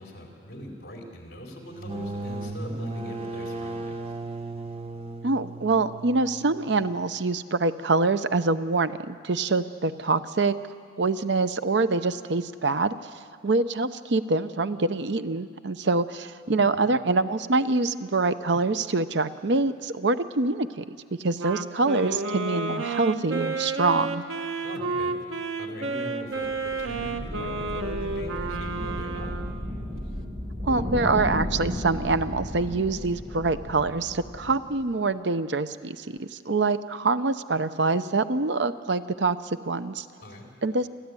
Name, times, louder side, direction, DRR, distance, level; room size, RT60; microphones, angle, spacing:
voice 1, 0.0-3.9 16.5-16.9 24.6-25.2 25.6-29.3 40.2-40.5, equal, 50° left, 0 dB, 4.2 m, -41 dB
sound 1, 1.7-7.2, right 2 dB, 30° right, 0.9 m, -36 dB
voice 2, 5.2-10.5 11.0-12.9 13.4-24.2 30.6-40.1 40.6-40.9, right 3 dB, 65° right, 12 dB, 0.7 m, -25 dB
Wind instrument woodwind instrument, 21.4-29.7, right 3 dB, 90° right, 1.3 m, -31 dB
sound 2, 26.5-34.8, left 1 dB, 50° right, 6.7 m, -34 dB
28.0 x 13.5 x 9.8 m, 2.2 s
head